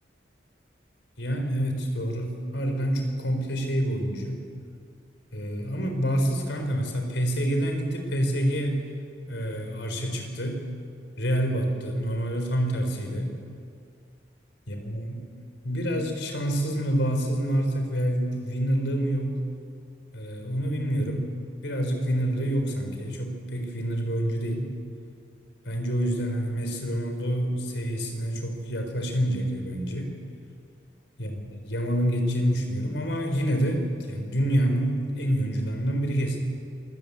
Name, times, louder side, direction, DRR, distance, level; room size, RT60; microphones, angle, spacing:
voice 1, 1.2-4.4 5.3-8.8 9.3-10.6 11.2-13.4 14.7-15.2 15.6-19.3 20.1-21.3 21.6-24.7 25.6-30.1 31.2-36.4, equal, 70° left, 4 dB, 4.3 m, -27 dB
26.0 x 15.0 x 8.7 m, 2.3 s
head